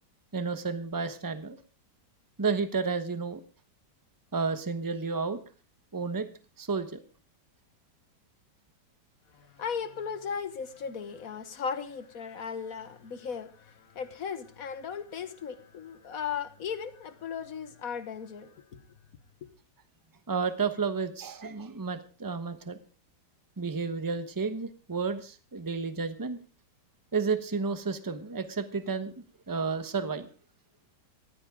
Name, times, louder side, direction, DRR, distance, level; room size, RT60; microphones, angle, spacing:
voice 1, 0.3-1.6 2.4-3.4 4.3-5.4 5.9-6.3 6.6-7.0 20.3-22.8 23.6-26.4 27.1-29.1 29.5-30.3, right 4 dB, 15° right, 0.9 m, -31 dB
voice 2, 9.3-18.8, left 6 dB, 55° left, 1.7 m, -37 dB
19.0 x 15.0 x 3.7 m
omnidirectional pair, 1.9 m